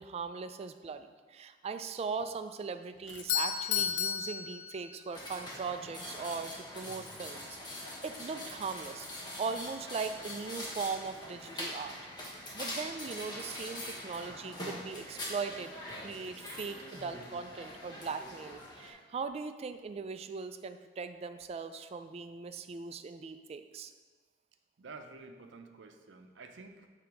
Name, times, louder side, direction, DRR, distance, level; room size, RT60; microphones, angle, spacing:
voice 1, 0.0-7.6 8.0-9.1 9.4-12.0 12.5-15.8 16.0-23.9, right 5 dB, 35° right, 9 dB, 0.3 m, -39 dB
Doorbell, 3.1-5.2, left 9 dB, 80° left, 0.4 m, -33 dB
sound 1, 5.1-18.9, left 1 dB, 25° left, 1.2 m, -43 dB
voice 2, 24.8-26.9, right 3 dB, 80° right, 6 dB, 0.6 m, -50 dB
6.9 x 3.8 x 4.6 m, 1.4 s
head